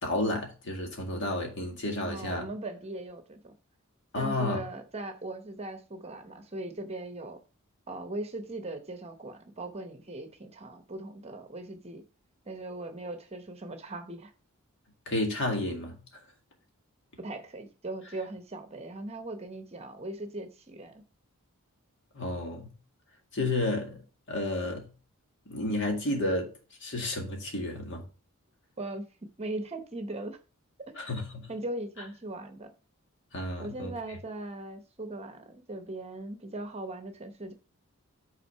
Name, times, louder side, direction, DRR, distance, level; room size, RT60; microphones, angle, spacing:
voice 1, 0.0-2.5 4.1-4.6 15.1-16.0 22.1-22.7 23.3-24.0 24.3-24.9 25.5-26.5 26.8-28.1 31.0-31.5 33.3-33.9, left 2 dB, 60° left, 1.9 m, -31 dB
voice 2, 2.0-3.5 4.1-7.4 7.9-12.0 12.5-14.3 17.2-21.0 28.8-29.1 29.4-30.4 30.9-31.1 31.5-32.7 33.6-37.5, right 2 dB, 30° right, 0.9 m, -39 dB
5.9 x 4.2 x 5.5 m
head